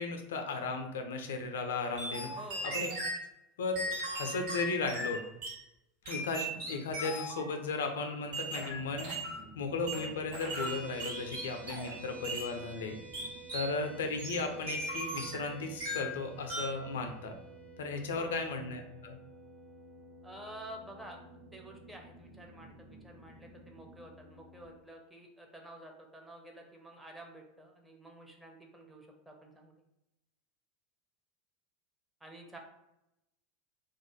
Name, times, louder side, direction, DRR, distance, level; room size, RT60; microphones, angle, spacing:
voice 1, 0.0-2.3 2.6-2.9 3.6-3.8 4.1-5.2 6.1-9.1 9.6-13.0 13.5-17.4 17.8-19.2, left 3 dB, 65° left, 5 dB, 0.3 m, -35 dB
sound 1, 2.0-3.2 3.7-5.6 6.0-7.4 8.3-9.4 9.9-12.0 12.2-12.5 13.1-13.7 14.2-15.5 15.8-16.2 16.5-16.8, right 1 dB, 55° right, 1.0 m, -38 dB
voice 2, 2.2-2.9 18.1-18.4 20.2-21.2 21.5-29.7 32.2-32.6, right 1 dB, 5° right, 1 dB, 0.5 m, -50 dB
sound 2, 8.6-24.7, left 1 dB, 30° right, 0.8 m, -55 dB
sound 3, 10.6-21.8, right 7 dB, 80° right, 1.0 m, -53 dB
2.3 x 2.1 x 3.0 m, 0.89 s
figure-of-eight pair, 80°, 0 cm